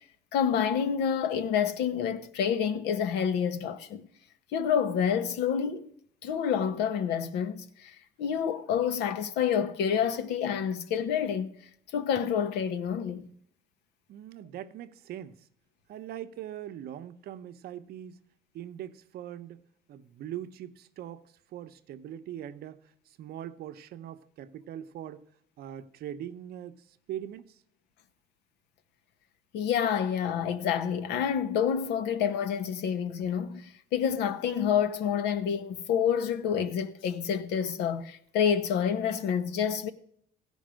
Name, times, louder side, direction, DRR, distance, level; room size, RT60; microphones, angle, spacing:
voice 1, 0.3-4.1 4.5-5.9 6.2-11.5 11.9-13.3 29.5-39.9, left 8 dB, 80° left, 0.9 m, -28 dB
voice 2, 14.1-15.5 15.9-18.2 18.5-19.6 19.9-25.2 25.6-27.6, right 11 dB, 65° right, 0.8 m, -41 dB
15.5 x 5.4 x 6.2 m
cardioid pair, 110°, 17 cm